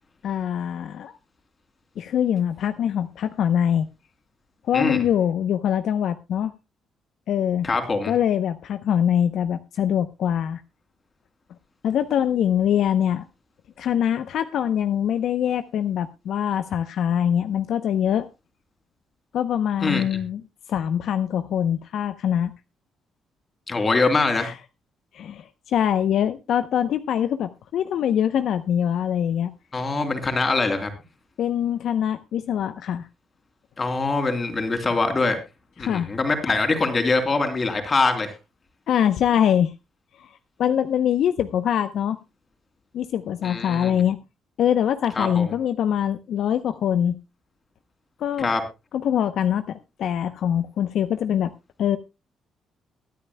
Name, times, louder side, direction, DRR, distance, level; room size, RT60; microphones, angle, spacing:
voice 1, 0.2-1.1 2.0-3.9 4.7-6.5 7.3-7.7 8.1-10.6 11.8-13.2 13.8-18.3 19.3-20.4 20.7-22.5 24.4-24.5 25.1-29.5 31.4-33.1 35.8-36.1 38.9-39.7 40.2-40.3 40.6-42.2 42.9-44.2 44.6-47.2 48.2-48.5 48.9-51.5 51.8-52.0, left 9 dB, 75° left, 0.7 m, -23 dB
voice 2, 7.6-8.1 19.8-20.2 23.7-24.5 29.7-30.9 33.8-35.4 35.8-38.3 43.4-43.9 45.2-45.4 48.4-48.6, left 3 dB, 30° left, 3.4 m, -23 dB
22.5 x 9.5 x 2.2 m
cardioid pair, 100°, 0 cm